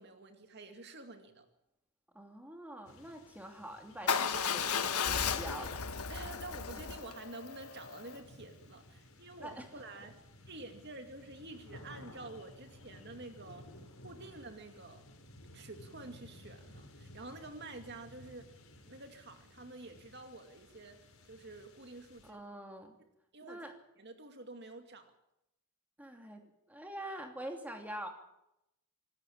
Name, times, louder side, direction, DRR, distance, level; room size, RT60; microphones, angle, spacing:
voice 1, 0.0-1.4 6.1-10.2 10.5-13.7 14.0-15.0 15.5-18.5 18.8-21.0 21.3-22.4 23.3-23.7 24.0-25.1, right 2 dB, 50° right, 6 dB, 2.3 m, -49 dB
voice 2, 2.1-5.9 9.4-9.7 22.2-23.0 23.5-23.7 26.0-28.1, right 1 dB, 5° right, 4 dB, 2.8 m, -45 dB
sound 1, 2.8-22.3, left 1 dB, 70° left, 4.6 m, -56 dB
Motorcycle / Engine starting / Idling, 4.1-8.2, left 6 dB, 85° left, 1.5 m, -34 dB
25.0 x 14.0 x 8.7 m, 0.85 s
head